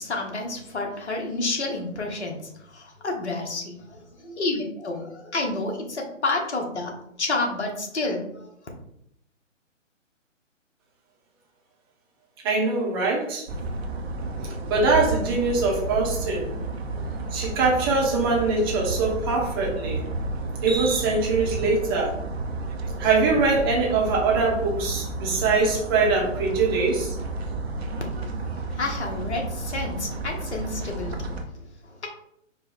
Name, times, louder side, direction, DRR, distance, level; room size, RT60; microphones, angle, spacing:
voice 1, 0.0-8.5 28.7-32.1, left 2 dB, 60° left, 1 dB, 1.2 m, -30 dB
voice 2, 12.4-13.5 14.7-16.5 17.3-20.0 20.6-22.1 23.0-27.1, right 3 dB, 20° right, -2 dB, 0.8 m, -23 dB
sound 1, 13.5-31.4, right 2 dB, 55° right, 0.7 m, -31 dB
4.7 x 2.2 x 4.4 m, 0.75 s
figure-of-eight pair, 140°, 39 cm